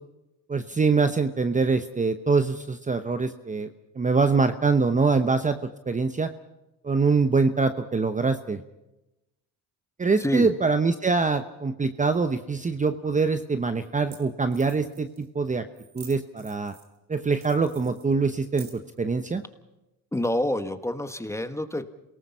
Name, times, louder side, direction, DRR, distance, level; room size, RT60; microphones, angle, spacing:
voice 1, 0.5-3.7 4.0-5.6 5.9-6.3 6.8-8.6 10.0-15.6 15.9-16.7 17.1-19.4, right 4 dB, 20° right, 10 dB, 1.0 m, -24 dB
voice 2, 10.2-10.5 20.1-21.9, left 1 dB, 5° left, 10 dB, 1.5 m, -28 dB
sound 1, 13.0-13.1 13.8-13.9 14.1-14.2 14.5-15.3 15.7-17.0 17.3-19.0, right 7 dB, 65° right, 4.1 m, -49 dB
28.0 x 18.5 x 5.6 m, 0.95 s
supercardioid pair, 90°, 37 cm